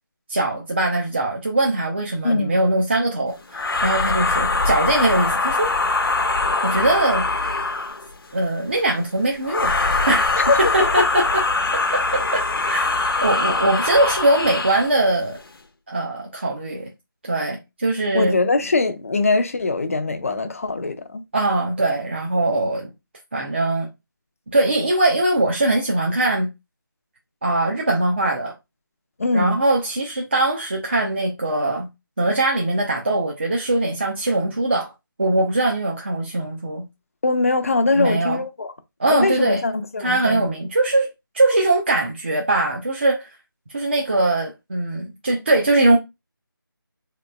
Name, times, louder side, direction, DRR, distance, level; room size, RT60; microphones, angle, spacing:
voice 1, 0.3-5.8 6.6-7.3 8.3-10.3 10.7-11.4 11.9-15.4 15.9-16.9 17.2-18.4 21.3-22.9 23.3-23.9 24.5-26.5 27.4-28.5 29.3-31.9 32.2-34.9 35.2-36.8 38.0-38.4 39.0-39.6 40.0-43.3 43.7-46.0, right 2 dB, 30° right, 0.5 m, -21 dB
sound 1, 3.5-8.1 9.4-14.9, left 3 dB, 75° left, 0.7 m, -22 dB
voice 2, 10.4-11.2 18.1-21.2 29.2-29.6 37.2-38.7 39.1-40.5, left 3 dB, 40° left, 0.4 m, -22 dB
3.7 x 2.8 x 2.2 m
figure-of-eight pair, 170°, 12 cm